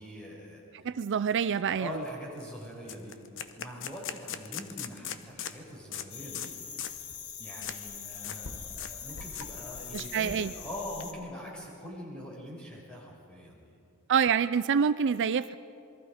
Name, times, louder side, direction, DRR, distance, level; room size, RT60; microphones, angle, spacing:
voice 1, 0.0-0.9 1.8-3.2 3.5-6.7 7.4-13.6, equal, 5° left, -4 dB, 6.3 m, -43 dB
voice 2, 0.7-1.9 9.9-10.5 14.1-15.6, right 7 dB, 55° right, 14 dB, 0.4 m, -27 dB
sound 1, 1.5-1.6 1.9-2.1 2.4-2.5 2.9-5.6 5.9-6.1 6.3-6.5 6.8-7.0 7.6-7.8 8.1-8.4 8.7-8.9 9.2-10.4, left 9 dB, 60° left, 1.0 m, -40 dB
sound 2, 6.1-11.1, left 6 dB, 80° left, 1.5 m, -42 dB
27.5 x 22.0 x 5.1 m, 2.5 s
head